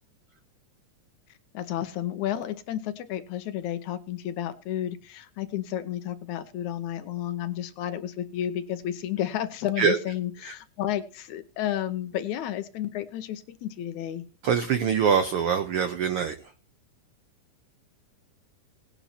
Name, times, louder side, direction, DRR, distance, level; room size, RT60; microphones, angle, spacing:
voice 1, 1.5-14.2, left 11 dB, 75° left, 2.1 m, -31 dB
voice 2, 14.4-16.3, right 7 dB, 80° right, 1.2 m, -24 dB
19.0 x 10.0 x 2.8 m
omnidirectional pair, 3.7 m